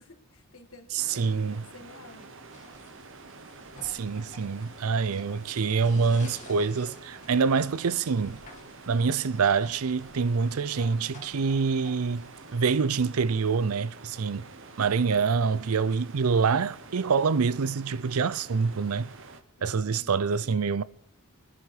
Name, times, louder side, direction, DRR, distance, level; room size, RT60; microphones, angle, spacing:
voice 1, 0.0-2.7 19.6-20.6, left 2 dB, 65° left, 2.2 m, -52 dB
voice 2, 0.9-1.6 3.8-8.4 8.9-14.5 14.8-19.1 19.6-20.8, right 5 dB, 75° right, 0.5 m, -26 dB
sound 1, 1.0-19.4, right 3 dB, 60° right, 1.2 m, -48 dB
sound 2, 2.5-12.8, left 3 dB, 35° left, 2.2 m, -51 dB
28.5 x 9.9 x 4.9 m
head